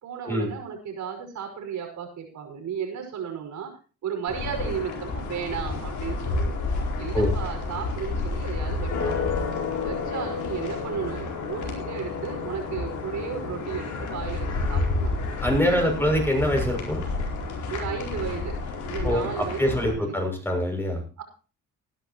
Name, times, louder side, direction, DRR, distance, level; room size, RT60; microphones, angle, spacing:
voice 1, 0.0-3.7 4.0-6.5 7.0-9.3 9.8-15.1 15.6-16.1 17.7-18.6 18.8-20.2 21.2-21.3, right 7 dB, 70° right, 4 dB, 5.6 m, -34 dB
sound 1, 4.3-19.9, left 3 dB, 75° left, 4.6 m, -30 dB
voice 2, 15.4-17.0 19.0-21.0, equal, 5° left, 2 dB, 6.9 m, -24 dB
19.5 x 11.5 x 3.0 m, 0.35 s
cardioid pair, 90°, 30 cm